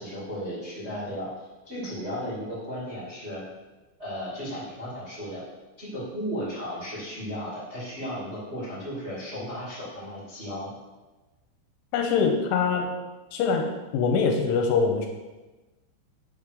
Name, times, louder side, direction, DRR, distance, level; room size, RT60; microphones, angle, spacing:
voice 1, 0.0-3.4 4.0-5.4 5.8-10.7, equal, 25° right, -9 dB, 1.5 m, -35 dB
voice 2, 11.9-12.9 13.3-13.7 13.9-15.1, left 5 dB, 90° left, 2 dB, 3.2 m, -23 dB
7.5 x 3.8 x 6.4 m, 1.1 s
omnidirectional pair, 5.7 m